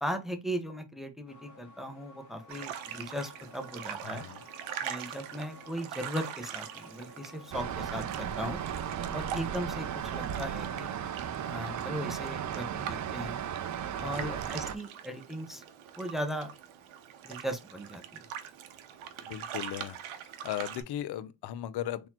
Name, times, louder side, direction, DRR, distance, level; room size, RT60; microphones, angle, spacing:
voice 1, 0.0-4.2 4.8-8.6 9.1-10.9 11.4-13.4 14.0-15.6 16.0-16.5 17.2-18.2, equal, ahead, 0.6 m, -37 dB
sound 1, 1.3-11.3, left 1 dB, 40° left, 1.0 m, -54 dB
sound 2, 2.5-20.8, right 9 dB, 85° right, 0.8 m, -43 dB
voice 2, 4.0-4.4 14.0-14.4 19.2-20.0 20.4-22.1, left 12 dB, 60° left, 0.5 m, -37 dB
sound 3, 7.5-14.7, right 9 dB, 40° right, 0.5 m, -35 dB
3.9 x 3.0 x 2.8 m
cardioid pair, 100°, 46 cm